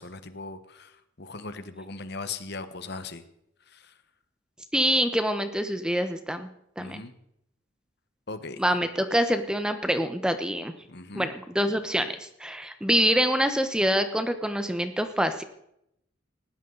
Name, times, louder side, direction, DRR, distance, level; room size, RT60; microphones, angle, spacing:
voice 1, 0.0-3.2 3.7-3.9 6.8-7.1 8.3-8.6 10.9-11.3, left 3 dB, 55° left, 10 dB, 1.3 m, -39 dB
voice 2, 4.7-6.5 6.8-7.0 8.6-10.7 11.1-15.4, equal, 5° right, 8 dB, 1.0 m, -25 dB
19.5 x 16.5 x 4.0 m, 0.76 s
head